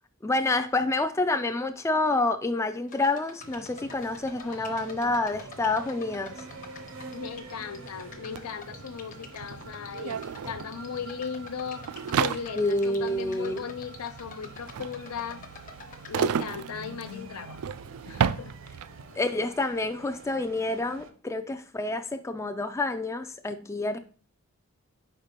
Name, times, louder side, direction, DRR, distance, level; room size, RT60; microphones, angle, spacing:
voice 1, 0.2-6.3 12.6-13.6 19.2-24.0, left 2 dB, 15° left, 0.3 m, -28 dB
sound 1, 2.9-16.5, left 5 dB, 40° left, 0.9 m, -48 dB
sound 2, 3.4-21.1, right 2 dB, 60° right, 0.8 m, -47 dB
voice 2, 4.4-5.1 7.1-11.9 12.2-15.4 16.1-17.6 18.0-18.5, left 6 dB, 90° left, 0.6 m, -37 dB
sound 3, 8.4-8.5 8.6-19.1, right 7 dB, 80° right, 0.3 m, -33 dB
5.0 x 4.4 x 5.1 m
head